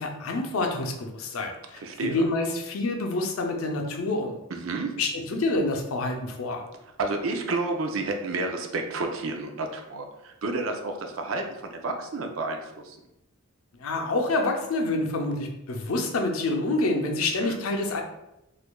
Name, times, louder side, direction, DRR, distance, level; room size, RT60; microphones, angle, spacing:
voice 1, 0.0-4.4 5.0-6.6 13.8-18.0, left 2 dB, 80° left, 3 dB, 0.6 m, -27 dB
voice 2, 1.8-2.2 4.5-4.9 7.0-11.5 11.7-13.0 17.4-17.6, right 3 dB, 70° right, 4 dB, 0.5 m, -30 dB
4.4 x 2.5 x 2.2 m, 0.88 s
head